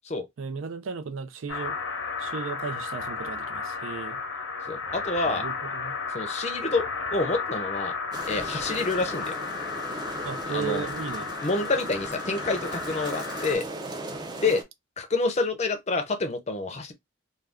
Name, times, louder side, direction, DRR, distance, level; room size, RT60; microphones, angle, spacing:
voice 1, 0.4-1.8 2.2-4.2 5.3-6.0 10.2-11.3, right 6 dB, 85° right, 0.4 m, -35 dB
sound 1, 1.5-13.5, left 4 dB, 80° left, 0.7 m, -33 dB
voice 2, 4.7-5.5 6.1-7.9 8.2-9.3 10.5-10.9 11.4-13.7 14.4-14.6 15.0-16.9, left 3 dB, 35° left, 0.5 m, -28 dB
sound 2, 8.1-14.6, right 2 dB, 20° right, 0.4 m, -38 dB
2.4 x 2.3 x 3.4 m
head